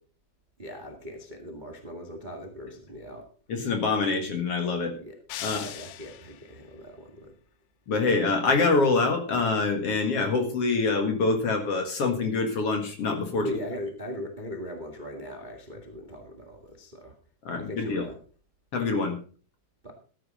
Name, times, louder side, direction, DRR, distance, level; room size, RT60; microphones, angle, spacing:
voice 1, 0.6-3.3 4.9-7.3 13.3-17.1 17.5-18.2 19.8-19.9, left 1 dB, 75° right, 3 dB, 0.4 m, -39 dB
voice 2, 3.5-5.0 5.4-5.6 7.9-13.5 17.4-18.1 18.7-19.2, left 3 dB, 50° left, 5 dB, 2.2 m, -25 dB
sound 1, 5.3-6.6, left 12 dB, 90° left, 2.9 m, -39 dB
13.5 x 11.0 x 3.8 m, 0.39 s
omnidirectional pair, 4.5 m